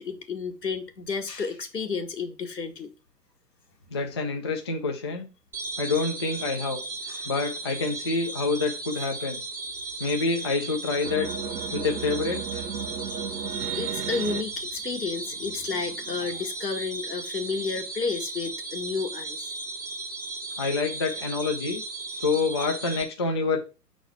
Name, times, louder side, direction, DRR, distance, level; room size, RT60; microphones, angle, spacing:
voice 1, 0.0-2.9 7.1-7.3 12.8-13.5 13.7-19.5, left 5 dB, 80° left, 1.6 m, -32 dB
voice 2, 3.9-5.3 5.8-6.8 7.2-9.4 10.0-11.3 11.7-12.6 20.6-21.8 22.1-23.6, left 4 dB, 20° left, 0.4 m, -27 dB
sound 1, 5.5-23.0, right 3 dB, 5° right, 0.7 m, -36 dB
sound 2, 11.0-14.4, right 7 dB, 70° right, 1.0 m, -33 dB
6.6 x 4.1 x 5.8 m
figure-of-eight pair, 120°, 49 cm